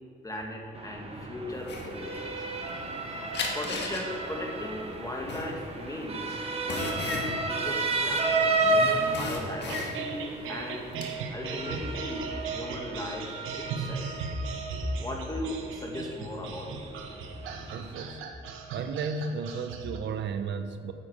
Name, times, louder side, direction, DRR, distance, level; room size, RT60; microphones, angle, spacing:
voice 1, 0.2-2.5 3.5-8.6 9.1-10.9 11.3-14.3 15.0-16.9, left 1 dB, 15° left, 0 dB, 1.8 m, -38 dB
Motor vehicle (road) / Siren, 0.7-18.1, right 2 dB, 30° right, 1.3 m, -33 dB
sound 1, 1.6-3.0 3.3-8.6 8.9-10.3 10.6-11.1, left 3 dB, 60° left, 1.6 m, -35 dB
sound 2, 9.6-20.0, right 4 dB, 90° right, 1.1 m, -37 dB
voice 2, 17.7-18.2 18.7-20.9, right 5 dB, 65° right, 8 dB, 0.7 m, -34 dB
9.6 x 7.2 x 4.8 m, 2.4 s
cardioid pair, 90°, 20 cm